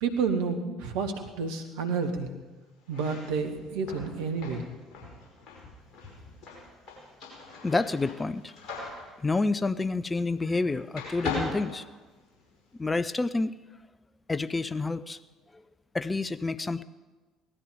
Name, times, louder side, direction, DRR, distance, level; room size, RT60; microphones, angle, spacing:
voice 1, 0.0-2.3 2.9-4.7, right 5 dB, 65° right, 4 dB, 1.7 m, -30 dB
sound 1, 2.8-10.6 10.9-12.6, left 3 dB, 50° left, 5.4 m, -39 dB
voice 2, 7.6-8.5 9.2-11.9 12.8-13.5 14.3-15.2 15.5-15.6 15.9-16.8, left 3 dB, 20° left, 14 dB, 0.7 m, -28 dB
18.0 x 13.5 x 5.2 m, 1.2 s
figure-of-eight pair, 55°, 0 cm